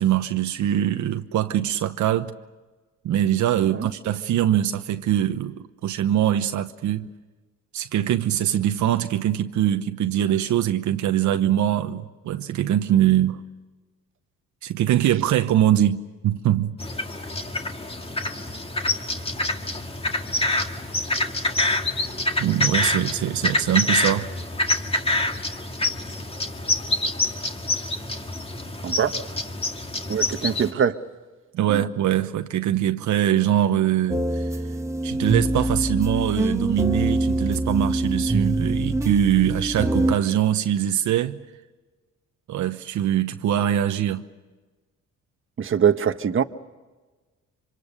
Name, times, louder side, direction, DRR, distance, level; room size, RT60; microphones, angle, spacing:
voice 1, 0.0-2.3 3.0-7.1 7.7-13.4 14.6-16.8 22.4-24.3 31.5-34.5 35.0-41.4 42.5-44.2, right 11 dB, 75° right, 1.0 m, -23 dB
sound 1, 16.8-30.7, left 2 dB, 20° left, 2.0 m, -26 dB
voice 2, 28.8-29.2 30.1-31.0 31.7-31.8 45.6-46.4, right 8 dB, 40° right, 1.2 m, -23 dB
sound 2, 34.1-40.1, right 1 dB, 10° right, 1.2 m, -24 dB
26.5 x 25.5 x 6.7 m
cardioid pair, 90°, 30 cm